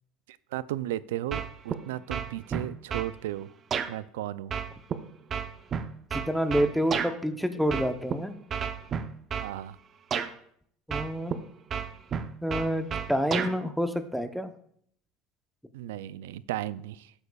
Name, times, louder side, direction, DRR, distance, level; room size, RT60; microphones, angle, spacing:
voice 1, 0.5-3.5 3.9-4.5 9.4-9.8 15.7-17.1, right 13 dB, 90° right, 0.3 m, -35 dB
sound 1, 1.3-1.8 2.1-3.1 3.7-3.9 4.5-7.1 7.7-8.1 8.5-9.5 10.1-10.3 10.9-11.4 11.7-13.5, right 7 dB, 40° right, 0.7 m, -31 dB
voice 2, 6.1-8.3 10.9-11.4 12.4-14.5, equal, ahead, 0.8 m, -28 dB
13.5 x 8.1 x 2.3 m
supercardioid pair, 105°, 0 cm